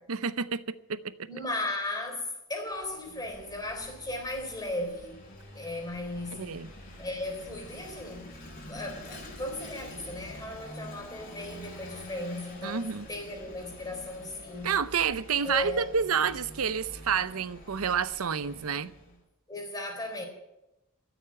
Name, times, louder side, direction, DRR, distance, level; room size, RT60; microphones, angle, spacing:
voice 1, 0.1-1.3 6.4-6.7 12.6-13.1 14.6-18.9, right 6 dB, 80° right, 0.7 m, -29 dB
voice 2, 1.3-5.2 5.5-6.5 7.0-8.4 8.7-14.7 15.4-15.8 19.5-20.2, left 2 dB, 20° left, 3.9 m, -36 dB
Vehicle / Engine, 2.6-19.2, left 1 dB, 40° left, 5.0 m, -47 dB
14.0 x 8.0 x 9.9 m
head